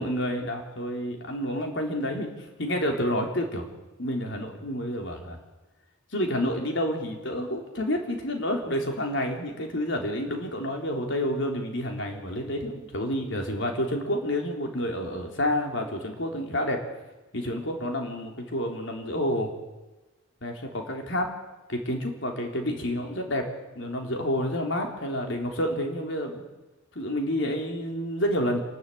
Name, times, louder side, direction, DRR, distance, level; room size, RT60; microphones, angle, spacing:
voice 1, 0.0-3.7 4.0-5.4 6.1-16.8 17.3-19.5 20.4-21.3 21.7-23.4 23.8-26.5 27.0-28.6, equal, 65° left, 2 dB, 3.9 m, -29 dB
27.0 x 12.5 x 8.7 m, 1.1 s
head